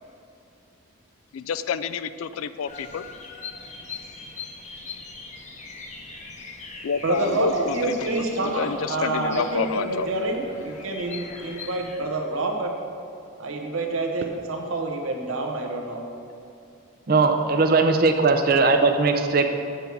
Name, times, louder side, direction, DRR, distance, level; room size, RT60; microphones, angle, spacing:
voice 1, 1.3-3.0 6.8-10.1 10.8-11.7, left 6 dB, 85° left, 13 dB, 0.4 m, -30 dB
Bird vocalization bird call bird song, 2.7-12.0, left 4 dB, 35° left, 0.7 m, -41 dB
voice 2, 7.0-12.7 13.4-16.0, right 2 dB, 85° right, 2 dB, 1.1 m, -27 dB
voice 3, 17.1-19.5, right 3 dB, 45° right, 6 dB, 0.5 m, -19 dB
7.8 x 4.6 x 6.9 m, 2.6 s
head